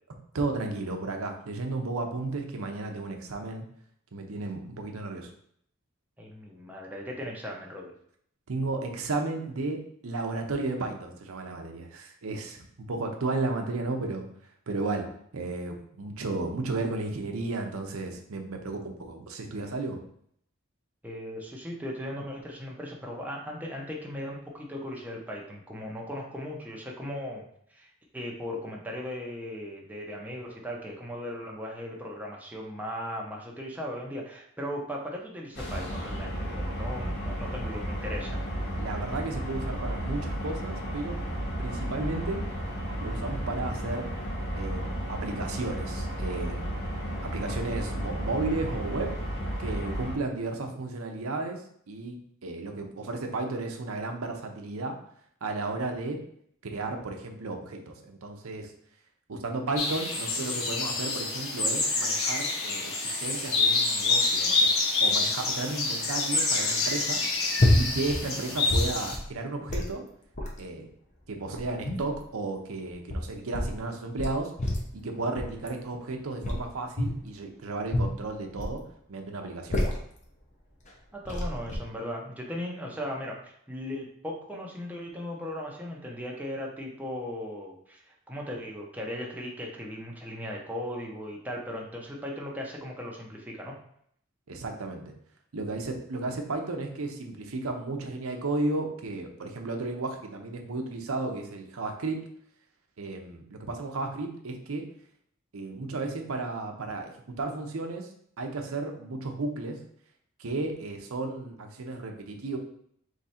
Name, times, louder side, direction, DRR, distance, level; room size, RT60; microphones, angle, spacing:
voice 1, 0.3-3.7 4.1-5.3 8.5-14.2 14.7-20.0 38.8-41.2 41.6-42.4 43.0-44.1 44.5-46.9 47.2-49.1 49.6-55.0 55.4-56.2 56.6-58.7 59.3-64.7 65.0-67.2 67.7-70.0 70.6-70.9 71.3-74.5 74.9-78.8 79.1-79.8 94.5-95.1 95.5-102.2 103.0-104.8 105.5-108.1 108.4-109.8 110.4-112.6, right 3 dB, 90° right, 3 dB, 0.7 m, -33 dB
voice 2, 6.2-7.9 21.0-27.4 27.7-38.4 81.1-93.8, left 1 dB, 10° right, -2 dB, 0.7 m, -37 dB
sound 1, 35.5-50.1, equal, 55° left, 1.3 m, -33 dB
sound 2, 59.8-69.2, left 3 dB, 80° left, 1.0 m, -27 dB
sound 3, 67.6-68.2 68.5-69.3 69.7-69.9 70.4-70.6 71.3-72.2 72.9-73.8 74.2-75.0 75.4-75.7 76.4-77.3 77.9-78.8 79.4-80.2 80.9-81.0 81.2-81.8, left 1 dB, 35° left, 0.8 m, -28 dB
3.7 x 3.2 x 4.2 m, 0.67 s
head